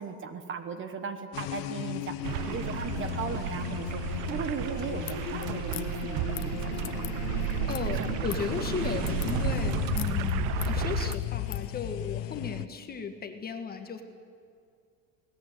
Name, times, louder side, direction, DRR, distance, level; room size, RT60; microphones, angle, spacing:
voice 1, 0.0-7.2 7.9-8.3 8.7-8.8, right 6 dB, 30° right, 9 dB, 1.3 m, -38 dB
sound 1, 1.3-12.7, left 16 dB, 80° left, 0.9 m, -34 dB
sound 2, 2.2-11.2, right 14 dB, 50° right, 0.7 m, -33 dB
sound 3, 5.0-11.7, left 19 dB, 55° left, 0.9 m, -44 dB
voice 2, 7.7-14.0, left 5 dB, 25° left, 6 dB, 1.5 m, -35 dB
20.5 x 18.5 x 9.2 m, 2.4 s
cardioid pair, 155°, 41 cm